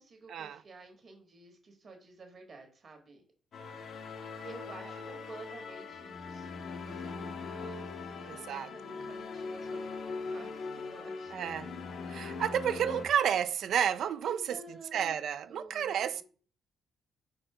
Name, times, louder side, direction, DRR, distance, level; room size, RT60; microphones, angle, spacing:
voice 1, 0.0-3.2 4.4-11.5 12.1-12.4 14.2-15.1 15.5-16.2, right 3 dB, 45° right, 1.4 m, -51 dB
sound 1, 3.5-13.1, left 4 dB, 60° left, 0.6 m, -41 dB
voice 2, 8.3-8.7 11.3-11.7 12.1-14.6 14.9-16.2, right 9 dB, 70° right, 0.3 m, -31 dB
4.2 x 2.6 x 4.8 m
cardioid pair, 90°, 0 cm